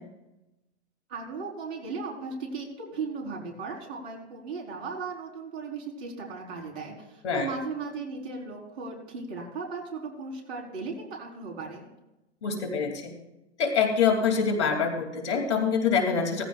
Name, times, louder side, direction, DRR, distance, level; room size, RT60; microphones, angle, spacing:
voice 1, 1.1-11.9, right 4 dB, 60° right, 0 dB, 4.5 m, -36 dB
voice 2, 12.4-13.1 13.6-16.5, left 6 dB, 70° left, 3 dB, 3.0 m, -25 dB
18.0 x 14.5 x 2.5 m, 0.96 s
hypercardioid pair, 110°, 35 cm